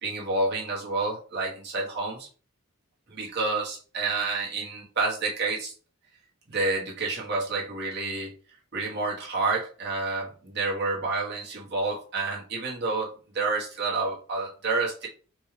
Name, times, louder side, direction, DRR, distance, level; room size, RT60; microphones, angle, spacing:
voice 1, 0.0-2.3 3.1-5.7 6.5-8.3 8.7-15.1, right 3 dB, 50° right, -3 dB, 1.2 m, -29 dB
4.3 x 2.3 x 3.2 m, 0.39 s
head